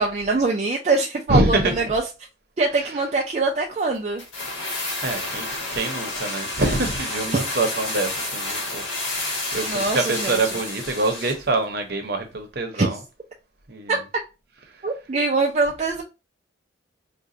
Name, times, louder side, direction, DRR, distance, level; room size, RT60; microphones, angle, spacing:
voice 1, 0.0-2.0 2.6-4.2 7.3-7.4 9.6-10.4 12.7-12.9 13.9-14.0 14.8-16.0, right 3 dB, 35° right, 0.4 m, -23 dB
voice 2, 1.3-1.9 5.0-8.9 9.1-13.0 13.7-14.0, right 2 dB, 50° right, 0.8 m, -25 dB
sound 1, 4.2-11.5 11.7-11.8, left 2 dB, 75° left, 1.5 m, -30 dB
4.9 x 2.2 x 2.7 m
head